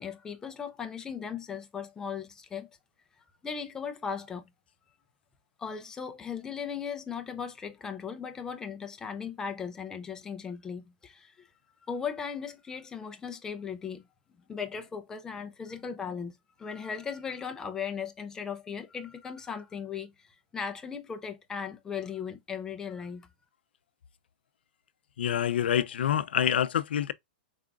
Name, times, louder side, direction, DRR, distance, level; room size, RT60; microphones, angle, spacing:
voice 1, 0.0-2.7 3.4-4.5 5.6-11.5 11.8-14.1 14.5-23.3, left 6 dB, 10° left, 0.6 m, -37 dB
voice 2, 25.2-27.1, left 9 dB, 80° left, 0.5 m, -26 dB
4.7 x 3.7 x 2.3 m
hypercardioid pair, 155°, 5 cm